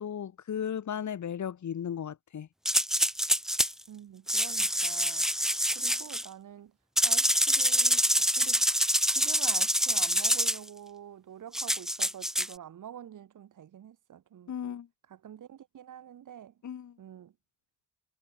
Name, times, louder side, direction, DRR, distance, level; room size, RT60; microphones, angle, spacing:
voice 1, 0.0-2.5 14.5-14.9 16.6-17.0, left 8 dB, 60° left, 4.7 m, -35 dB
sound 1, 2.6-3.7 4.3-6.2 7.0-10.6 11.5-12.5, equal, ahead, 3.0 m, -26 dB
voice 2, 3.9-6.7 7.0-8.6 9.1-14.6 15.1-16.5 17.0-17.3, right 10 dB, 65° right, 5.4 m, -47 dB
supercardioid pair, 60°, 33 cm